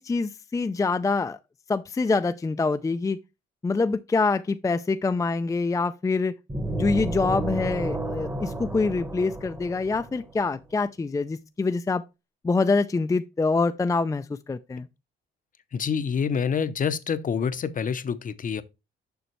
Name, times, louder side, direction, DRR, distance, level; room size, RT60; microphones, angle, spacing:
voice 1, 0.0-1.4 1.7-3.2 3.6-6.3 6.7-12.0 12.4-14.9, left 3 dB, 15° left, 0.4 m, -25 dB
sound 1, 6.5-10.3, right 2 dB, 10° right, 1.0 m, -31 dB
voice 2, 15.7-18.6, left 6 dB, 40° left, 0.7 m, -27 dB
6.9 x 5.6 x 3.1 m
cardioid pair, 90°, 20 cm